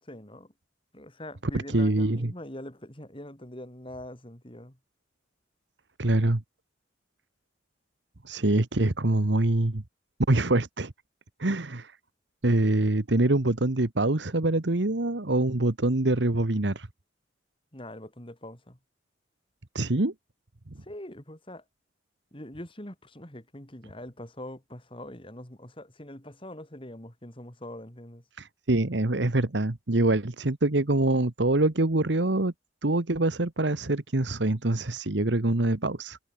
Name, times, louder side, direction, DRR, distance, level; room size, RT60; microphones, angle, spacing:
voice 1, 0.0-0.5 0.9-4.8 17.7-18.8 20.8-21.6 22.3-28.2, left 1 dB, 30° left, 4.2 m, -43 dB
voice 2, 1.5-2.3 6.0-6.4 8.2-9.8 10.3-10.9 11.4-11.9 12.4-16.9 19.7-20.1 28.4-32.5 32.8-36.2, right 2 dB, 75° right, 1.4 m, -25 dB
head